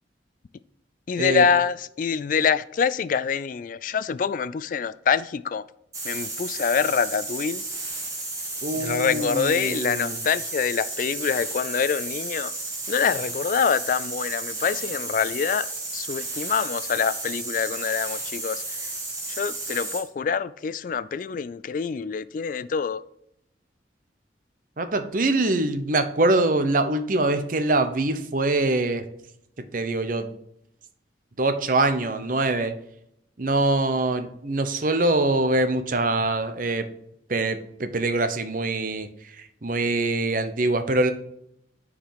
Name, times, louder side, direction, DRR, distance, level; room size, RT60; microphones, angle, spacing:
voice 1, 1.1-5.6 6.0-7.6 8.7-12.5 12.9-15.7 15.9-18.6 19.3-23.0, left 6 dB, 45° left, 0.3 m, -25 dB
sound 1, 5.9-20.1, right 2 dB, 20° right, 2.4 m, -33 dB
voice 2, 8.6-10.2 24.8-29.0 29.7-30.3 31.4-32.7 33.4-36.9 37.3-39.1 39.6-41.1, right 2 dB, 45° right, 0.8 m, -24 dB
10.0 x 4.9 x 5.7 m
head